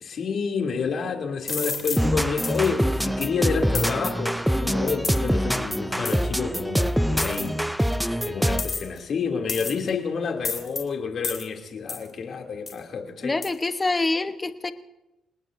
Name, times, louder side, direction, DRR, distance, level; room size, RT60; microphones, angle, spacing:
voice 1, 0.0-7.6 8.2-13.3, left 5 dB, 55° left, 2 dB, 2.9 m, -29 dB
sound 1, 1.5-2.0 2.4-2.7 3.7-3.9 5.0-5.3 6.1-6.2 7.2-7.5 8.6-9.0 9.5-9.9 10.4-10.8 11.2-11.5 11.9-12.1 12.7-12.8 13.4-13.5, left 5 dB, 40° left, 3.3 m, -30 dB
sound 2, 2.0-8.8, equal, ahead, 0.5 m, -25 dB
voice 2, 13.2-14.7, left 3 dB, 25° left, 9 dB, 1.1 m, -25 dB
28.0 x 19.0 x 2.7 m, 0.98 s
cardioid pair, 90°, 0 cm